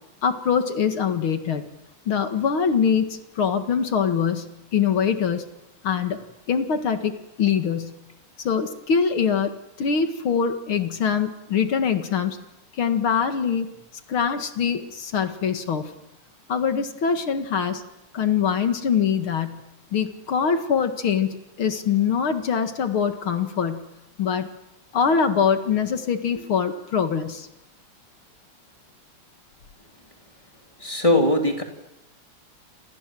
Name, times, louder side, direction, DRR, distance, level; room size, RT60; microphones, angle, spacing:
voice 1, 0.2-1.7 2.1-5.4 5.8-6.2 6.5-8.0 8.4-9.5 9.8-12.4 12.8-13.7 14.1-15.9 16.5-17.8 18.1-19.6 19.9-21.3 21.6-23.9 24.2-24.5 24.9-27.5, left 7 dB, 70° left, 7 dB, 2.7 m, -23 dB
voice 2, 30.8-31.6, left 1 dB, 15° left, 3 dB, 3.1 m, -20 dB
29.0 x 26.5 x 7.7 m, 0.93 s
omnidirectional pair, 2.4 m